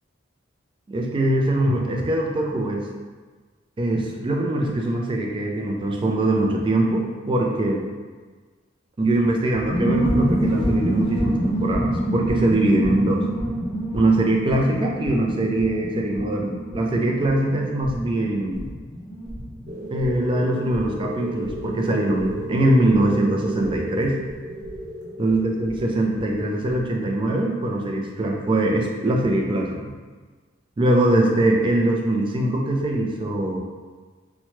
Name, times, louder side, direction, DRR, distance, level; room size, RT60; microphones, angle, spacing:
voice 1, 0.9-2.8 3.8-7.8 9.0-13.2 13.9-18.7 19.9-24.2 25.2-29.9 30.8-33.6, right 1 dB, 25° right, 0 dB, 0.3 m, -22 dB
sound 1, 9.5-25.8 26.1-26.2 26.4-26.8, right 1 dB, ahead, 0.8 m, -28 dB
sound 2, 19.7-28.0, right 1 dB, 60° right, 0.8 m, -34 dB
2.8 x 2.1 x 3.0 m, 1.4 s
head